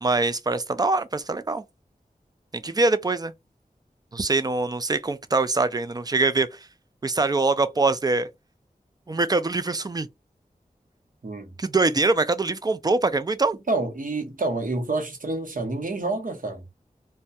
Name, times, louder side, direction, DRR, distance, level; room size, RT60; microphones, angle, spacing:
voice 1, 0.0-1.6 2.5-3.3 4.1-6.6 7.0-8.3 9.1-10.1 11.6-13.6, right 3 dB, 25° right, 0.3 m, -23 dB
voice 2, 13.7-16.6, right 2 dB, 60° right, 0.8 m, -28 dB
2.2 x 2.1 x 2.6 m
wide cardioid pair, 40°, 15 cm